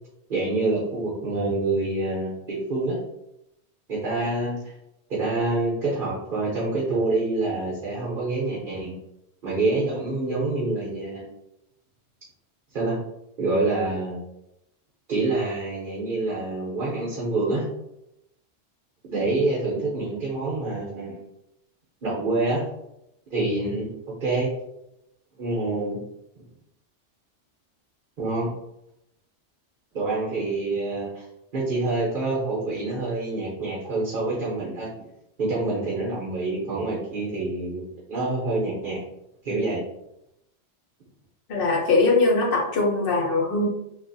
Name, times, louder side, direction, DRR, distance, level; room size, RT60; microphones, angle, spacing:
voice 1, 0.3-3.0 3.9-4.7 5.1-8.9 9.4-11.3 12.7-13.0 13.4-14.2 15.1-17.6 19.1-21.2 22.0-22.6 23.3-24.5 25.4-26.0 28.2-28.5 29.9-31.2 31.5-34.9 35.4-37.8 38.1-39.0 39.4-39.8, right 2 dB, 50° right, -5 dB, 0.9 m, -26 dB
voice 2, 41.5-43.7, left 3 dB, 55° left, -1 dB, 0.9 m, -21 dB
3.3 x 2.5 x 2.6 m, 0.84 s
omnidirectional pair, 1.2 m